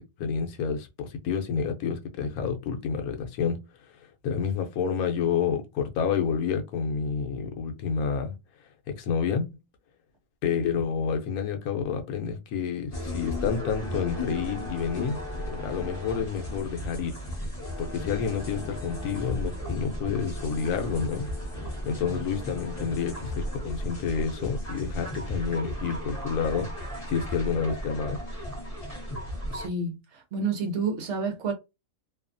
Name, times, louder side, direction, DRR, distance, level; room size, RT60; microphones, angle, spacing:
voice 1, 0.0-3.6 4.0-8.3 9.0-9.5 10.4-15.2 15.6-17.2 17.8-21.3 21.8-26.7 27.1-28.2, left 6 dB, 90° left, 1.2 m, -29 dB
sound 1, 12.9-29.7, left 1 dB, 30° left, 1.0 m, -35 dB
voice 2, 29.5-31.5, right 4 dB, 60° right, 0.9 m, -29 dB
2.8 x 2.3 x 2.5 m
omnidirectional pair, 1.5 m